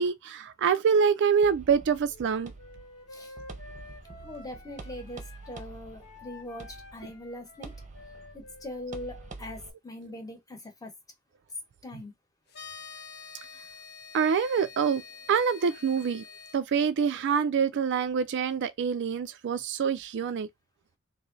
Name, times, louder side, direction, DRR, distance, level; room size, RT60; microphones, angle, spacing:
voice 1, 0.0-2.5 11.9-12.0 14.1-15.0 15.3-16.2 16.5-20.5, right 6 dB, 55° right, 0.4 m, -26 dB
sound 1, 1.4-9.7, right 3 dB, 35° right, 0.7 m, -47 dB
Wind instrument woodwind instrument, 2.1-5.7 6.0-9.8, left 2 dB, 80° left, 1.6 m, -51 dB
voice 2, 4.2-7.7 8.3-10.9 11.8-12.1, left 1 dB, 15° left, 1.0 m, -41 dB
sound 2, 12.5-16.6, left 6 dB, 45° left, 0.7 m, -46 dB
3.1 x 2.7 x 3.9 m
head